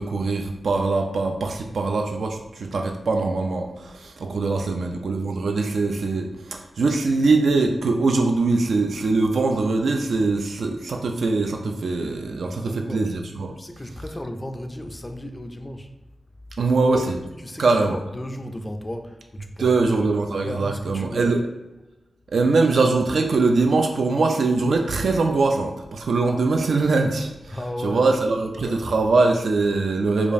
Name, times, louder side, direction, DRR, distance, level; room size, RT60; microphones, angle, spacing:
voice 1, 0.0-13.5 16.6-17.2 17.6-18.0 19.6-21.4 22.3-30.3, right 3 dB, 70° right, 3 dB, 0.3 m, -22 dB
voice 2, 12.4-13.1 13.6-15.9 16.6-20.1 20.4-21.3 27.5-28.1 28.6-29.0 29.6-29.9, left 1 dB, 15° left, 5 dB, 0.3 m, -35 dB
4.9 x 2.3 x 2.6 m, 1.0 s
wide cardioid pair, 160°, 0 cm